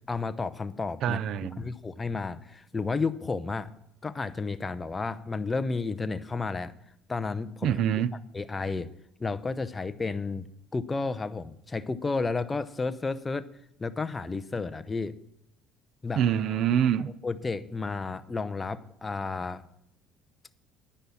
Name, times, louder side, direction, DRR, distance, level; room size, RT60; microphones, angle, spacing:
voice 1, 0.1-1.2 1.6-3.7 4.0-6.7 7.1-7.8 8.3-8.9 9.2-10.5 10.7-13.5 13.8-15.1 16.0-16.2 17.2-19.7, left 4 dB, 20° left, 0.7 m, -32 dB
voice 2, 1.0-1.6 7.6-8.1 16.2-17.1, right 9 dB, 55° right, 0.6 m, -25 dB
10.0 x 9.8 x 7.1 m
supercardioid pair, 105°, 0 cm